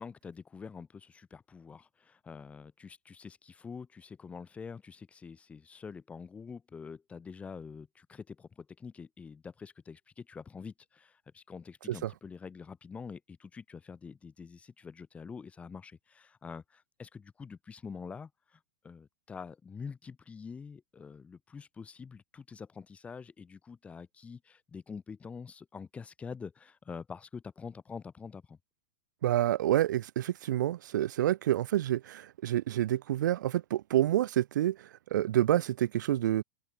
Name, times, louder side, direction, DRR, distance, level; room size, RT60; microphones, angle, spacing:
voice 1, 0.0-28.6, left 5 dB, 15° left, 1.3 m, -46 dB
voice 2, 29.2-36.4, right 13 dB, 80° right, 0.5 m, -28 dB
open air
supercardioid pair, 145°, 10 cm